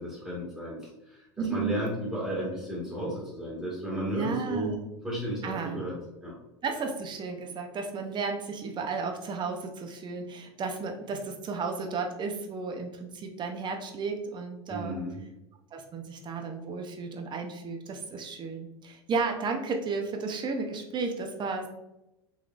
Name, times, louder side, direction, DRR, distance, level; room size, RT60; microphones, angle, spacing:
voice 1, 0.0-4.8 5.0-5.9 6.2-6.3 14.7-15.2, equal, 10° right, -9 dB, 1.4 m, -33 dB
voice 2, 1.4-1.7 4.1-4.8 5.4-5.8 6.6-15.0 15.7-21.7, right 4 dB, 30° right, 4 dB, 0.7 m, -33 dB
4.0 x 3.0 x 2.4 m, 0.93 s
hypercardioid pair, 100°, 15 cm